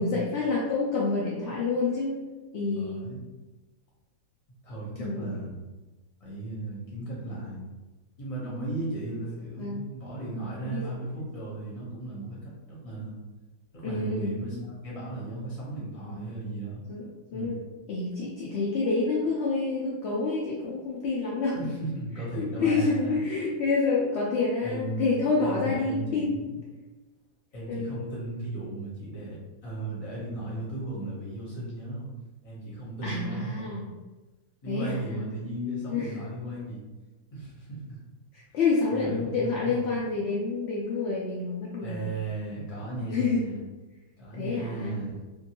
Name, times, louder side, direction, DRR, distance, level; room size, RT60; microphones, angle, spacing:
voice 1, 0.0-2.2 2.5-3.1 5.0-5.2 9.6-9.8 10.3-10.9 13.8-14.3 16.1-16.3 16.9-17.0 17.3-17.6 17.9-21.6 22.3-26.4 27.7-28.1 33.0-33.9 34.7-35.2 35.9-36.2 38.5-42.0 43.1-43.5 44.3-45.0, left 4 dB, 75° left, -5 dB, 0.6 m, -28 dB
voice 2, 2.6-3.2 4.6-5.5 6.2-7.6 8.2-13.2 13.7-16.9 17.3-17.5 21.5-23.2 24.6-26.5 27.5-29.4 29.6-32.1 32.4-33.8 34.6-36.8 37.3-38.0 38.9-40.0 41.8-43.6 44.2-45.2, right 2 dB, 30° left, -6 dB, 0.8 m, -36 dB
2.6 x 2.2 x 2.9 m, 1.2 s
omnidirectional pair, 1.7 m